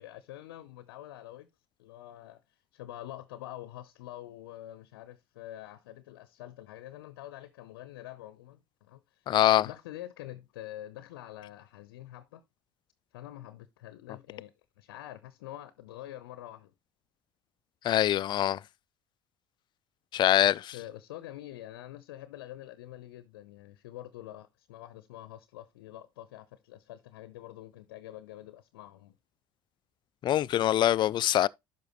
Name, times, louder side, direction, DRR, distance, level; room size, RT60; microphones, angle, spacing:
voice 1, 0.0-1.5 1.8-12.4 13.1-16.7 20.6-29.1, left 14 dB, 70° left, 0.7 m, -46 dB
voice 2, 9.3-9.7 17.8-18.6 20.1-20.7 30.2-31.5, left 12 dB, 40° left, 0.4 m, -24 dB
11.0 x 5.9 x 3.0 m
hypercardioid pair, 65°, 13 cm